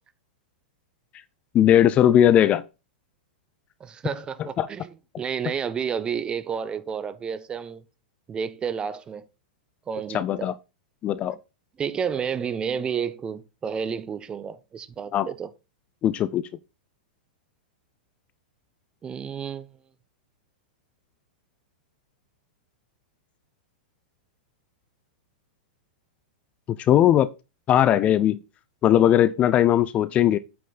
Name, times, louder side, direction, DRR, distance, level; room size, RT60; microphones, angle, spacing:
voice 1, 1.5-2.6 4.6-4.7 10.1-10.5 11.0-11.4 15.1-15.3 16.0-16.5 26.7-27.3 27.7-28.4 28.8-30.4, left 11 dB, 25° left, 0.5 m, -19 dB
voice 2, 3.8-7.8 8.3-9.3 9.9-10.5 11.8-15.5 19.0-19.7, right 7 dB, 20° right, 0.7 m, -31 dB
8.6 x 5.3 x 4.1 m
figure-of-eight pair, 100°, 5 cm